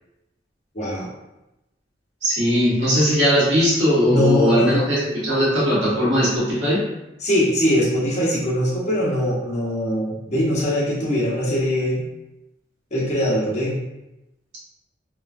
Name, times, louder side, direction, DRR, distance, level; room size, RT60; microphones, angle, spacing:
voice 1, 0.7-1.1 4.0-4.8 7.2-12.1 12.9-13.8, equal, 40° left, -6 dB, 0.8 m, -22 dB
voice 2, 2.2-6.8, equal, 85° right, -8 dB, 1.3 m, -19 dB
3.0 x 2.3 x 2.5 m, 0.94 s
head